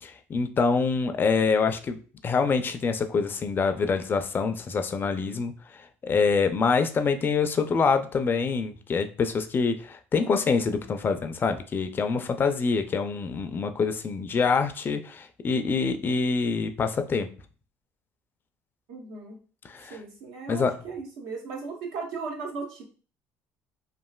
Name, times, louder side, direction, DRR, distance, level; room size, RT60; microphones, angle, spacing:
voice 1, 0.0-2.0 2.2-5.5 6.0-17.3 19.7-20.0 20.5-20.8, left 5 dB, 35° left, 8 dB, 0.4 m, -25 dB
voice 2, 18.9-19.4 19.8-22.8, right 4 dB, 80° right, -1 dB, 1.0 m, -37 dB
3.1 x 2.4 x 2.3 m, 0.38 s
supercardioid pair, 90°, 6 cm